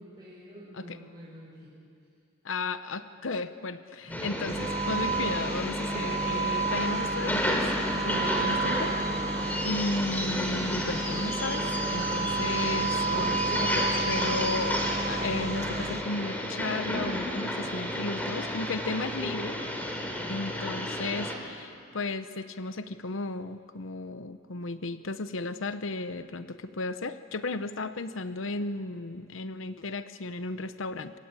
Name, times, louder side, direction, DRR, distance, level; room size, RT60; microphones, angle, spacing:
voice 1, 0.0-1.7 4.0-4.5 19.9-20.5, equal, 20° right, -7 dB, 5.8 m, -48 dB
voice 2, 2.4-4.6 4.9-7.6 8.0-8.9 9.6-19.6 20.3-31.1, left 3 dB, 75° left, 11 dB, 0.9 m, -34 dB
sound 1, 4.1-21.3, left 1 dB, 10° left, 3.5 m, -32 dB
sound 2, 4.5-16.0, right 3 dB, 35° right, 1.6 m, -31 dB
27.0 x 23.0 x 8.9 m, 2.4 s
head